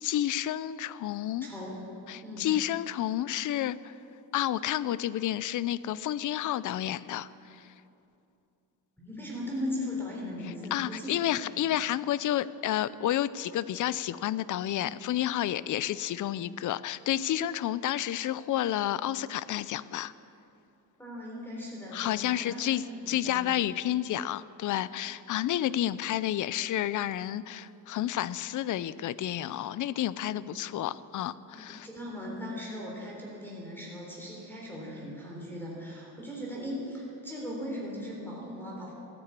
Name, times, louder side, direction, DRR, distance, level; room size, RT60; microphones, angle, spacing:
voice 1, 0.0-1.5 2.1-4.0 4.3-7.7 10.7-20.1 21.9-31.9, left 12 dB, 50° left, 18 dB, 0.5 m, -30 dB
voice 2, 1.4-1.8 2.2-2.5 9.0-11.2 11.5-11.6 21.0-23.5 30.3-30.4 31.5-38.9, left 1 dB, 5° left, -3 dB, 3.7 m, -38 dB
14.5 x 10.0 x 8.2 m, 2.7 s
cardioid pair, 125°, 40 cm